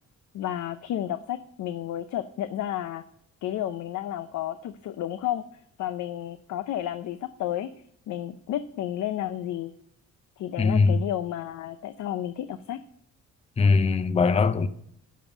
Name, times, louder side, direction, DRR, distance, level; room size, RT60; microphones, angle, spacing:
voice 1, 0.3-3.0 3.4-5.4 5.8-7.7 8.1-9.7 10.4-12.8, left 12 dB, 70° left, 0.6 m, -31 dB
voice 2, 10.6-11.0 13.6-14.7, left 4 dB, 20° left, 0.5 m, -21 dB
12.5 x 5.5 x 6.9 m
cardioid pair, 90°, 30 cm